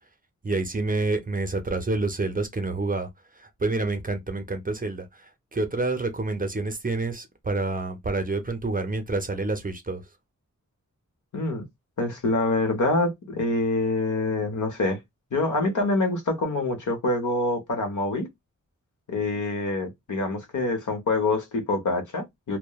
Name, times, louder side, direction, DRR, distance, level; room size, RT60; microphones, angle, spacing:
voice 1, 0.4-3.1 3.4-10.0, right 3 dB, 25° right, 0.5 m, -28 dB
voice 2, 11.3-11.7 12.0-15.0 15.3-18.3 19.1-22.6, left 2 dB, 70° left, 0.8 m, -26 dB
2.9 x 2.1 x 2.2 m
wide cardioid pair, 105°, 31 cm